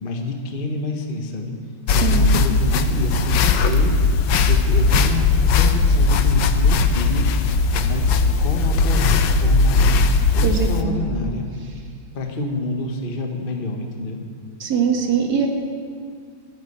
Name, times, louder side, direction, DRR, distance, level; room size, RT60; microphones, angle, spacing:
voice 1, 0.0-1.5 1.9-4.0 4.5-7.3 7.7-9.9 10.3-11.5 12.1-14.2, left 3 dB, 35° left, 3 dB, 1.0 m, -28 dB
sound 1, 1.9-10.8, left 3 dB, 65° left, 1.3 m, -18 dB
voice 2, 1.9-2.2 10.4-11.1 14.6-15.5, right 6 dB, 50° right, 2 dB, 2.0 m, -22 dB
13.0 x 9.8 x 8.5 m, 2.1 s
omnidirectional pair, 2.4 m